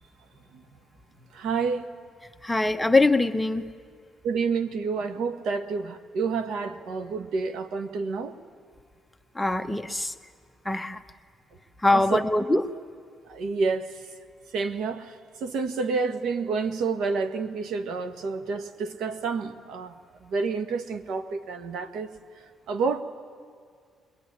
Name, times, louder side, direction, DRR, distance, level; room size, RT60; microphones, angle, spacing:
voice 1, 1.3-1.8 4.2-8.3 11.9-12.2 13.3-13.9 14.5-15.1 15.4-19.9 20.2-22.1 22.7-23.0, right 4 dB, 80° right, 8 dB, 1.6 m, -29 dB
voice 2, 2.4-3.7 9.3-10.1 10.6-11.0 11.8-12.7, left 2 dB, 10° left, 7 dB, 1.0 m, -23 dB
22.0 x 21.5 x 9.8 m, 2.1 s
cardioid pair, 90°, 0 cm